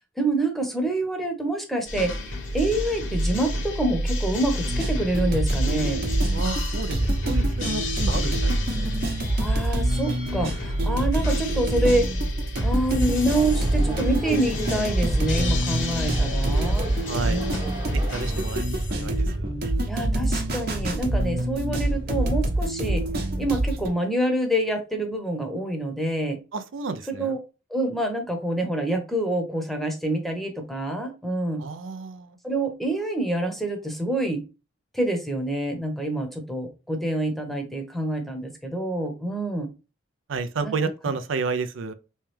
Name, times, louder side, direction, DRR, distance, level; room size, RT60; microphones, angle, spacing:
voice 1, 0.2-6.0 9.4-12.1 12.6-16.9 17.3-17.7 19.9-23.0 23.4-26.4 27.2-27.4 27.7-31.6 32.4-34.4 34.9-39.7 40.6-40.7, right 1 dB, ahead, 0.8 m, -27 dB
sound 1, 1.9-19.2, equal, 70° left, 1.2 m, -30 dB
sound 2, 4.7-23.9, right 1 dB, 55° right, 0.9 m, -26 dB
voice 2, 6.3-8.9 17.1-17.4 17.9-19.5 26.5-27.4 31.6-32.4 40.3-41.9, right 4 dB, 90° right, 0.5 m, -31 dB
sound 3, 13.3-18.5, equal, 25° right, 0.8 m, -35 dB
3.3 x 3.1 x 3.2 m
head